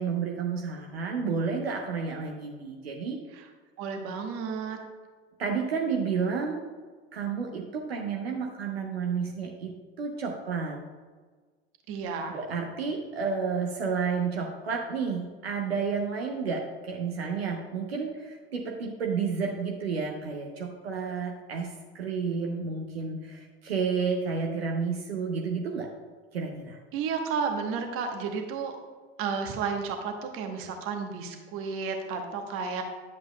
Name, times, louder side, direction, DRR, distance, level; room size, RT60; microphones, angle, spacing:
voice 1, 0.0-3.2 5.4-6.6 7.1-10.8 12.3-25.9 26.3-26.8, right 5 dB, 70° right, 1 dB, 0.8 m, -31 dB
voice 2, 3.8-4.8 11.9-12.4 26.9-28.8 29.2-32.8, right 5 dB, 45° right, 4 dB, 1.1 m, -32 dB
10.5 x 7.6 x 2.2 m, 1.4 s
figure-of-eight pair, 70°, 32 cm